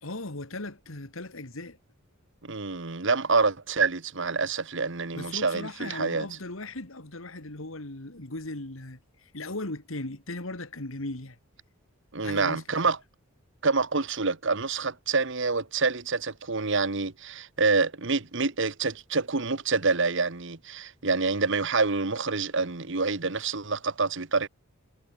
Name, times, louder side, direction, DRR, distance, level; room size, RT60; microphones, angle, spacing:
voice 1, 0.0-1.8 5.1-11.4 12.2-12.6, left 2 dB, 75° left, 2.6 m, -37 dB
voice 2, 2.4-6.3 12.1-13.0 13.6-24.5, right 4 dB, 60° right, 1.5 m, -27 dB
head